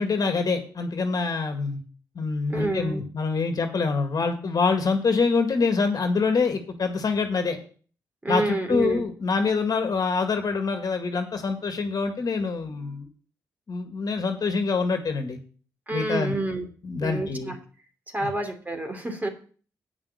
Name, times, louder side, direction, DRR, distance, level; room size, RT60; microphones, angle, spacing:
voice 1, 0.0-1.8 2.2-7.6 8.3-13.1 13.7-15.4 15.9-16.3 16.8-17.5 18.2-18.3, left 4 dB, 55° left, 6 dB, 1.9 m, -25 dB
voice 2, 2.5-3.0 8.2-9.0 15.9-16.7 17.0-17.5 18.1-19.3, right 2 dB, 20° right, 4 dB, 3.0 m, -28 dB
8.8 x 6.1 x 8.3 m, 0.42 s
supercardioid pair, 50°, 8 cm